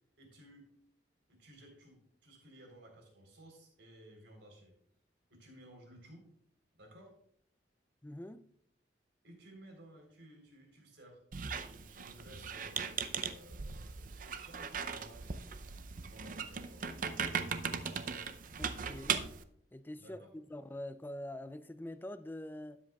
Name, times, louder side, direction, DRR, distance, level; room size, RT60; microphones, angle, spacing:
voice 1, 0.2-0.7 1.3-4.8 5.3-6.3 6.7-7.1 9.2-11.2 11.5-16.8 20.0-20.3, right 1 dB, 80° right, 3.8 m, -57 dB
voice 2, 8.0-8.5 18.6-19.2 19.7-22.8, left 1 dB, 10° left, 0.4 m, -45 dB
Squeak, 11.3-19.4, right 6 dB, 50° right, 0.6 m, -39 dB
12.5 x 10.0 x 2.3 m
head